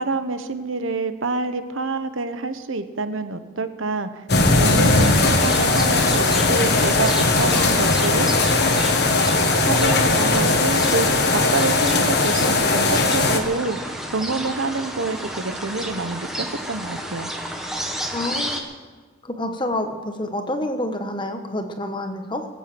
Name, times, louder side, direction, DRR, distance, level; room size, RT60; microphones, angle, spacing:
voice 1, 0.0-4.1 4.5-8.3 9.6-17.3, right 3 dB, 85° right, 10 dB, 1.1 m, -27 dB
sound 1, 4.3-13.4, left 3 dB, 55° left, 1.5 m, -19 dB
sound 2, 4.8-18.6, equal, ahead, 1.4 m, -31 dB
voice 2, 18.1-18.7 19.2-22.5, left 1 dB, 25° left, 6 dB, 1.2 m, -28 dB
21.0 x 8.3 x 7.8 m, 1.4 s
head